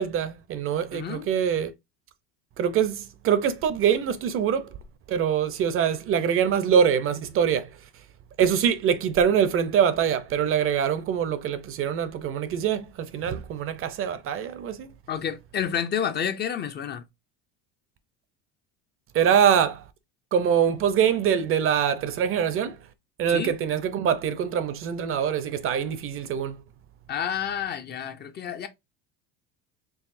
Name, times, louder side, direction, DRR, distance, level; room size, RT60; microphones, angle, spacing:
voice 1, 0.0-1.7 2.6-4.7 5.1-7.7 8.4-14.9 19.1-19.8 20.3-22.8 23.2-26.6, right 8 dB, 40° right, 0.5 m, -24 dB
voice 2, 0.9-1.3 15.1-17.0 23.3-23.5 27.1-28.7, left 8 dB, 30° left, 0.4 m, -29 dB
4.7 x 3.1 x 2.5 m
supercardioid pair, 120°, 35 cm